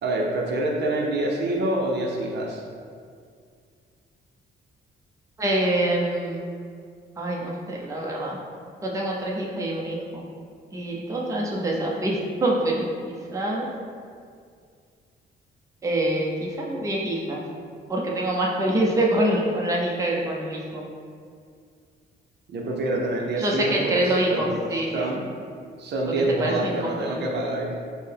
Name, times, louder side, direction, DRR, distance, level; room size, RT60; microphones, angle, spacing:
voice 1, 0.0-2.6 22.5-25.2 25.8-27.7, right 2 dB, 60° right, -1 dB, 0.6 m, -26 dB
voice 2, 5.4-6.4 7.2-8.4 8.8-10.2 10.7-13.7 15.8-17.4 17.9-20.8 23.4-24.9 26.4-27.2, right 1 dB, 15° right, -3 dB, 0.6 m, -25 dB
4.3 x 2.1 x 3.3 m, 2.2 s
cardioid pair, 90°, 20 cm